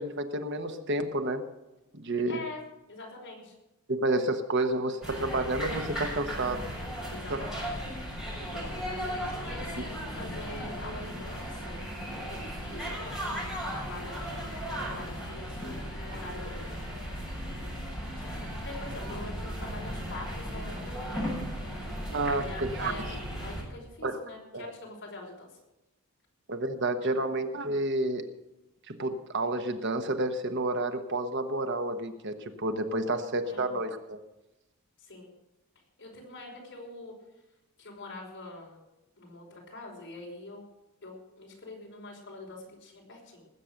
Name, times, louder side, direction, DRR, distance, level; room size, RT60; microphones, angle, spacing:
voice 1, 0.0-1.4 1.9-2.4 3.9-6.7 7.3-7.5 22.1-22.9 24.0-24.2 24.5-24.6 26.5-28.3 28.9-34.2, right 2 dB, 50° right, 7 dB, 1.2 m, -30 dB
voice 2, 2.3-2.6 2.9-3.6 7.1-7.7 8.8-11.8 12.3-16.6 18.2-21.2 22.4-23.1 23.4-25.6 27.0-27.3 33.5-33.7 35.0-35.3 36.0-37.1 37.8-38.8 39.2-40.7 41.0-43.4, left 2 dB, 55° left, -1 dB, 5.3 m, -44 dB
sound 1, 5.0-23.6, equal, ahead, 6.9 m, -36 dB
19.5 x 8.5 x 6.5 m, 0.97 s
head